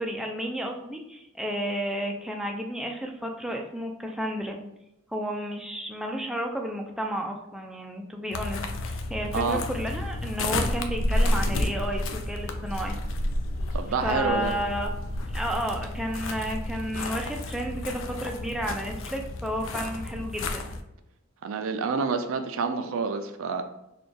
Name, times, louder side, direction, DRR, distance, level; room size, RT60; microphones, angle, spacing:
voice 1, 0.0-4.6 5.1-13.0 14.0-15.0 15.3-20.6, equal, ahead, 1 dB, 0.4 m, -32 dB
sound 1, 8.3-20.8, left 1 dB, 65° left, 0.4 m, -31 dB
voice 2, 9.3-9.6 13.7-14.5 21.4-23.6, right 4 dB, 70° right, 7 dB, 0.4 m, -28 dB
4.1 x 2.3 x 3.3 m, 0.86 s
head